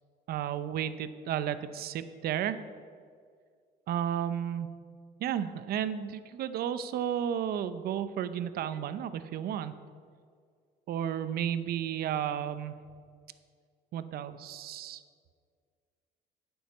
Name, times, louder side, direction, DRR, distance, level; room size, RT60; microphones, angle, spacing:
voice 1, 0.3-2.6 3.9-4.7 5.2-9.7 10.9-12.8 13.9-15.0, right 9 dB, 65° right, 12 dB, 0.7 m, -33 dB
9.4 x 6.4 x 8.2 m, 2.1 s
cardioid pair, 110°, 17 cm